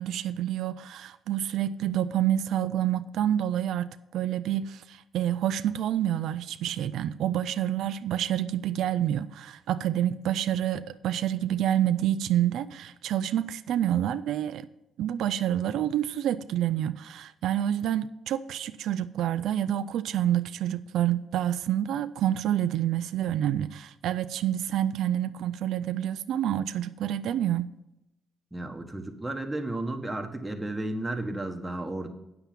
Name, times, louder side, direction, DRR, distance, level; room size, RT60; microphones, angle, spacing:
voice 1, 0.0-14.7 15.0-27.7, right 11 dB, 80° right, 0.3 m, -28 dB
voice 2, 28.5-32.1, right 2 dB, 10° right, 1.3 m, -33 dB
9.0 x 6.9 x 5.9 m
cardioid pair, 90°, 0 cm